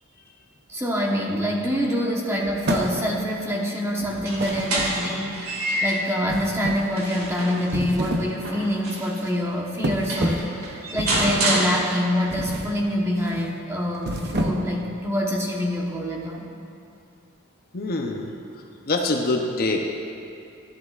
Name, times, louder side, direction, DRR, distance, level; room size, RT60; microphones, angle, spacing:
voice 1, 0.7-5.5 5.8-10.5 10.9-16.5, equal, 15° right, -2 dB, 1.1 m, -25 dB
sound 1, 2.6-3.3 4.4-5.3 6.3-7.0 7.6-8.4 8.7-9.0 9.8-10.6 11.0-11.5 12.3-12.8 13.1-13.4 13.9-14.8, right 1 dB, 50° right, 0.7 m, -28 dB
sound 2, 4.1-6.2 6.7-9.3 9.8-9.9 10.1-12.3, right 1 dB, 80° right, 2.2 m, -28 dB
voice 2, 17.7-18.3 18.9-19.9, left 2 dB, 45° left, 2 dB, 0.7 m, -24 dB
13.5 x 11.0 x 2.4 m, 2.6 s
head